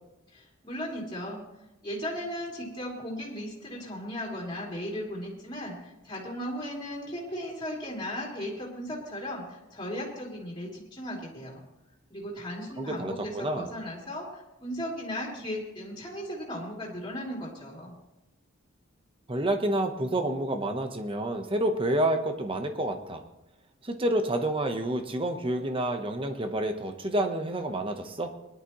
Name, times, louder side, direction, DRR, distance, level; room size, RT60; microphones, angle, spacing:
voice 1, 0.3-1.4 1.8-11.6 12.1-17.9, equal, 20° left, -3 dB, 3.1 m, -36 dB
voice 2, 12.8-13.7 19.3-23.2 23.8-28.3, right 1 dB, 25° right, 6 dB, 1.0 m, -29 dB
20.5 x 11.5 x 3.1 m, 0.93 s
head